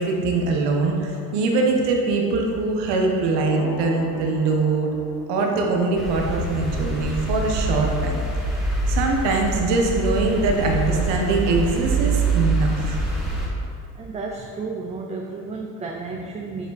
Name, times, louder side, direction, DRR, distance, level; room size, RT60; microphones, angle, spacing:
voice 1, 0.0-5.0 5.3-8.2 8.9-13.0, right 3 dB, 85° right, 1 dB, 1.3 m, -22 dB
sound 1, 3.4-5.4, left 4 dB, 45° left, 0.8 m, -34 dB
sound 2, 5.9-13.5, right 2 dB, ahead, 1.5 m, -25 dB
voice 2, 14.0-16.7, right 3 dB, 15° right, 1 dB, 0.4 m, -32 dB
7.8 x 5.1 x 4.1 m, 2.4 s
cardioid pair, 120°, 42 cm